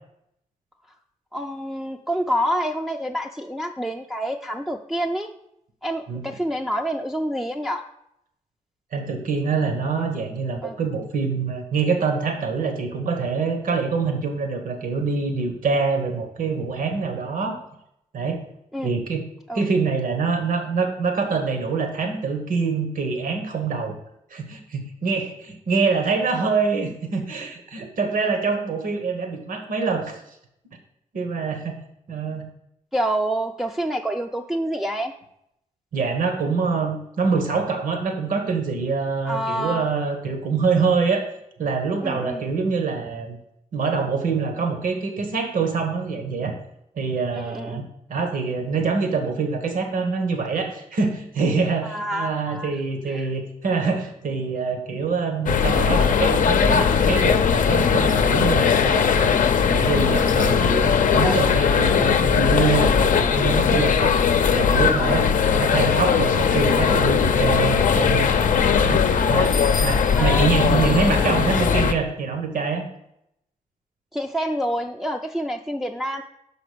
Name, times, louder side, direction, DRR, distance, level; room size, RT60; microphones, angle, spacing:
voice 1, 1.3-5.3 5.8-7.8 10.6-10.7 18.7-18.9 19.5-19.6 32.9-35.1 39.3-39.9 42.0-42.4 47.3-47.8 51.8-52.7 53.1-53.3 61.2-61.4 61.9-62.0 64.8-65.2 67.3-67.4 70.1-70.5 70.7-70.8 74.1-76.2, equal, ahead, -1 dB, 0.5 m, -27 dB
voice 2, 8.9-17.6 18.1-18.4 18.8-19.2 19.5-23.9 24.3-30.2 31.1-31.8 32.1-32.5 35.9-41.2 41.6-43.4 43.7-46.5 46.9-59.4 59.7-64.2 64.5-68.5 68.8-69.0 69.3-72.8, right 4 dB, 75° right, 5 dB, 1.3 m, -25 dB
sound 1, 55.5-71.9, left 6 dB, 65° left, 0.6 m, -19 dB
6.0 x 5.0 x 6.7 m, 0.78 s
cardioid pair, 80°, 14 cm